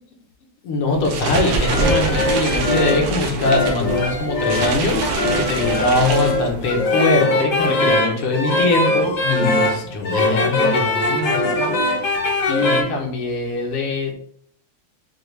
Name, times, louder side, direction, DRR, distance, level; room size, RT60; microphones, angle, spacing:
voice 1, 0.6-11.7 12.5-14.1, left 2 dB, 80° left, 0 dB, 1.9 m, -22 dB
sound 1, 0.9-6.8, right 4 dB, 75° right, 1.7 m, -26 dB
sound 2, 1.4-12.8, left 2 dB, 55° left, 0.9 m, -21 dB
Acoustic guitar / Strum, 4.9-8.5, right 3 dB, 55° right, 0.8 m, -39 dB
6.7 x 2.4 x 3.2 m, 0.63 s
omnidirectional pair, 2.4 m